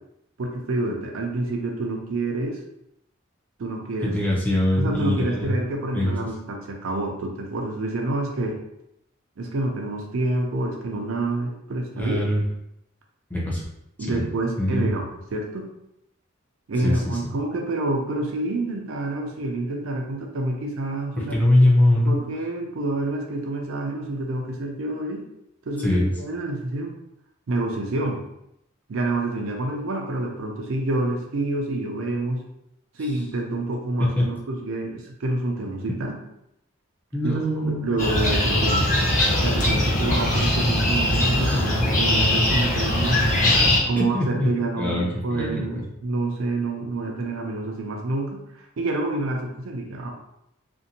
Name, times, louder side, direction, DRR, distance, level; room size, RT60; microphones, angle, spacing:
voice 1, 0.4-2.6 3.6-4.2 4.8-8.6 9.4-12.2 14.0-15.0 15.3-15.7 16.7-21.3 22.1-25.3 25.7-27.0 27.5-28.2 28.9-32.4 32.9-36.2 37.2-37.3 37.7-38.9 39.4-43.2 43.9-48.4 48.8-50.1, right 2 dB, 70° right, 1 dB, 0.5 m, -28 dB
voice 2, 4.0-5.5 5.9-6.1 11.9-12.4 13.3-13.6 14.1-14.2 14.6-14.9 16.8-17.3 21.2-22.1 25.8-26.1 34.2-34.3 37.1-37.9 44.0-45.9, left 1 dB, 10° left, -5 dB, 0.5 m, -22 dB
sound 1, 38.0-43.8, left 1 dB, 40° left, 0.8 m, -21 dB
2.5 x 2.1 x 2.7 m, 0.82 s
head